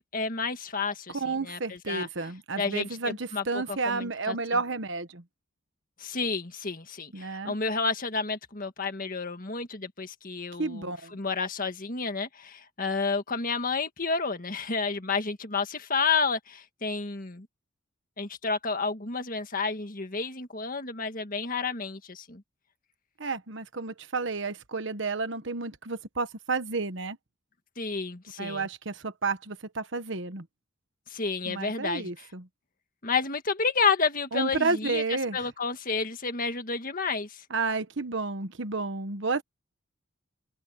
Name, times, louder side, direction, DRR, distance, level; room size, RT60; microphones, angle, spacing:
voice 1, 0.0-2.1 2.6-4.4 6.0-17.5 18.2-22.4 27.8-28.7 31.1-32.3 33.0-35.0 35.3-37.4, left 4 dB, 45° left, 1.8 m, -30 dB
voice 2, 1.1-5.2 7.1-7.6 10.6-11.2 23.2-27.2 28.4-30.5 31.4-32.5 34.3-35.4 37.5-39.4, right 3 dB, 60° right, 1.2 m, -31 dB
open air
head